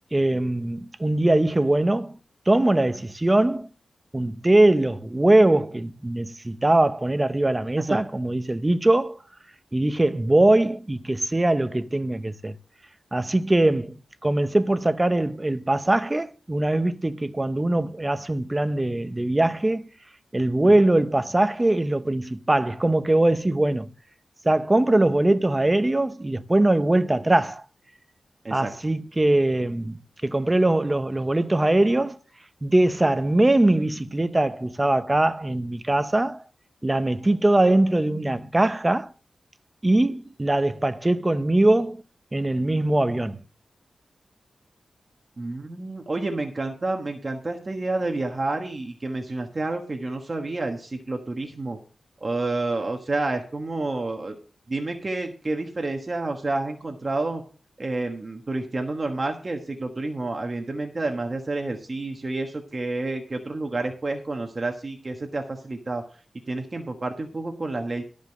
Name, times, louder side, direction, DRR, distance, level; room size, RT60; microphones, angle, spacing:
voice 1, 0.1-2.1 2.5-3.7 4.1-9.2 9.7-12.5 13.1-14.0 14.2-19.8 20.3-23.9 24.4-27.6 28.5-32.2 32.6-36.4 36.8-39.1 39.8-42.0 42.3-43.4, right 1 dB, 20° right, 0.7 m, -21 dB
voice 2, 45.4-51.8 52.2-54.4 54.7-57.4 57.8-66.0 66.5-68.0, right 2 dB, 35° right, 1.3 m, -29 dB
12.5 x 5.2 x 6.4 m
wide cardioid pair, 115°, 0 cm